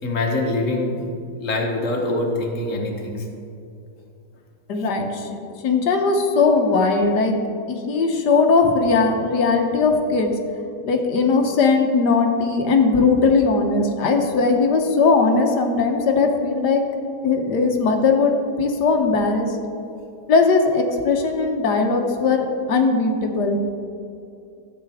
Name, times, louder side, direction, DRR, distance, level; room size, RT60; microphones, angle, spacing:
voice 1, 0.0-3.2 5.4-5.5, left 2 dB, 45° left, 1 dB, 1.5 m, -24 dB
voice 2, 4.7-5.3 5.6-7.3 7.7-10.3 10.8-16.8 17.2-18.3 18.6-19.5 20.3-23.6, left 4 dB, 70° left, 3 dB, 1.5 m, -19 dB
13.5 x 7.8 x 3.5 m, 2.5 s
omnidirectional pair, 1.9 m